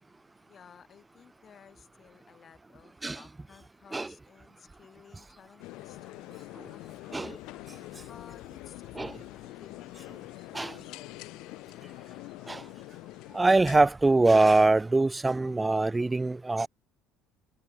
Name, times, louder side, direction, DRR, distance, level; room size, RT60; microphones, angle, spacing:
voice 1, 0.5-6.3 6.7-7.4 8.0-10.1 10.5-11.2, left 7 dB, 35° left, 6.0 m, -55 dB
sound 1, 5.6-13.8, left 21 dB, 55° left, 1.0 m, -45 dB
voice 2, 13.3-16.7, right 2 dB, 15° right, 0.4 m, -23 dB
figure-of-eight pair, 55°, 0 cm